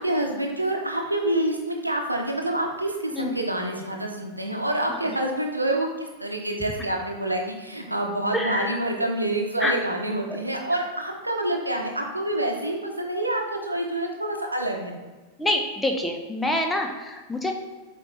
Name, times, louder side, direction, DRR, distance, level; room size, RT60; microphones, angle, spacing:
voice 1, 0.0-14.9, right 1 dB, 85° right, 1 dB, 0.9 m, -27 dB
voice 2, 8.3-8.7 9.6-9.8 15.4-17.5, left 1 dB, 5° left, 3 dB, 0.8 m, -26 dB
7.7 x 4.2 x 3.2 m, 1.3 s
figure-of-eight pair, 90°, 0 cm